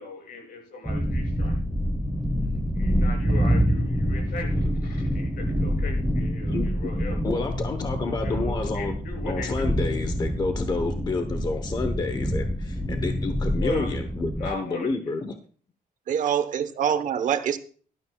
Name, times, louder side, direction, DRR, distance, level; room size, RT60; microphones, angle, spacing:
voice 1, 0.0-1.6 2.8-7.4 8.0-9.7 13.6-13.9 14.4-15.1, left 2 dB, 80° left, 6.6 m, -38 dB
sound 1, 0.9-14.5, equal, ahead, 1.0 m, -26 dB
voice 2, 7.2-9.0 9.2-15.3, left 3 dB, 30° left, 0.9 m, -29 dB
voice 3, 16.1-17.6, right 8 dB, 60° right, 1.0 m, -25 dB
17.5 x 12.5 x 2.3 m
cardioid pair, 160°, 15 cm